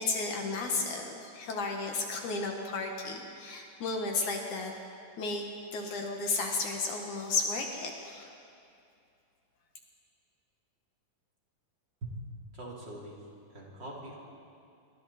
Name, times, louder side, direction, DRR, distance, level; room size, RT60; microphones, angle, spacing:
voice 1, 0.0-4.7 5.2-5.5 5.7-8.3, left 3 dB, 65° left, 2 dB, 2.8 m, -33 dB
voice 2, 12.5-13.2 13.5-14.2, right 2 dB, 30° right, -4 dB, 3.7 m, -43 dB
26.5 x 23.5 x 4.3 m, 2.5 s
omnidirectional pair, 4.0 m